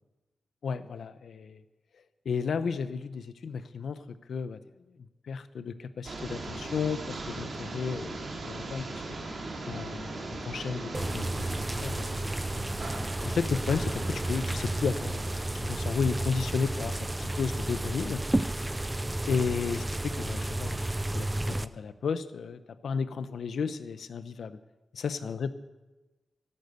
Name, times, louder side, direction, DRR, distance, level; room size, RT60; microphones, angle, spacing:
voice 1, 0.6-1.6 2.2-4.0 4.3-4.6 5.0-9.0 9.7-10.2 10.4-12.1 13.2-15.2 15.6-18.2 19.3-20.8 21.1-24.6 25.0-25.5, left 5 dB, 90° left, 13 dB, 0.8 m, -33 dB
sound 1, 6.0-15.6, right 2 dB, 50° right, 2.3 m, -39 dB
sound 2, 10.9-21.7, right 1 dB, 10° right, 0.4 m, -32 dB
13.5 x 12.0 x 6.7 m, 1.1 s
wide cardioid pair, 170°, 0 cm